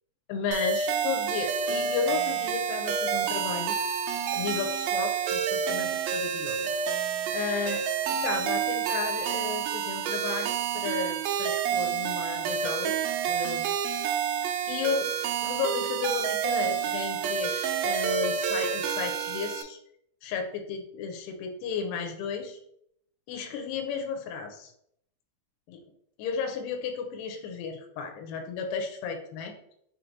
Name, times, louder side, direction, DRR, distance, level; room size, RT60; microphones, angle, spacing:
voice 1, 0.3-3.8 4.3-7.1 7.3-7.8 8.2-14.1 14.7-15.1 15.4-19.8 20.2-22.6 23.3-24.7 25.7-25.8 26.2-29.5, left 5 dB, 80° left, 4 dB, 2.2 m, -33 dB
sound 1, 0.5-19.6, right 8 dB, 90° right, 2.4 m, -29 dB
5.8 x 3.3 x 2.8 m, 0.71 s
omnidirectional pair, 4.2 m